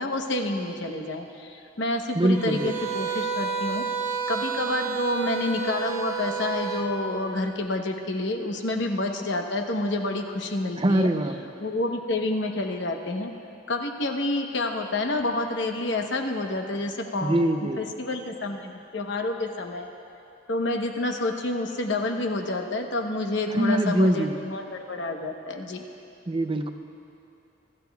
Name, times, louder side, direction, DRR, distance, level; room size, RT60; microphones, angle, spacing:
voice 1, 0.0-3.9 4.3-11.1 11.6-13.3 13.7-17.4 17.8-19.9 20.5-25.8, left 2 dB, 70° left, 4 dB, 1.0 m, -28 dB
voice 2, 2.1-2.7 10.8-11.4 17.2-17.8 23.5-24.3 26.3-26.7, right 1 dB, 30° right, 7 dB, 0.5 m, -23 dB
sound 1, 2.3-6.9, right 6 dB, 45° right, 1.3 m, -30 dB
25.0 x 13.0 x 2.3 m, 2.7 s
head